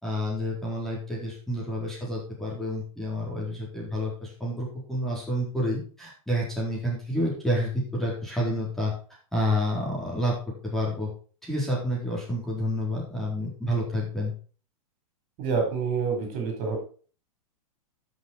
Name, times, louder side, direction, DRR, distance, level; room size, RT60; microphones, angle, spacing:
voice 1, 0.0-8.9 9.3-10.3 10.6-11.1 11.4-14.3, equal, ahead, -4 dB, 4.3 m, -29 dB
voice 2, 15.4-16.8, right 5 dB, 40° right, 2 dB, 4.9 m, -27 dB
12.5 x 6.6 x 4.6 m, 0.39 s
hypercardioid pair, 135°, 19 cm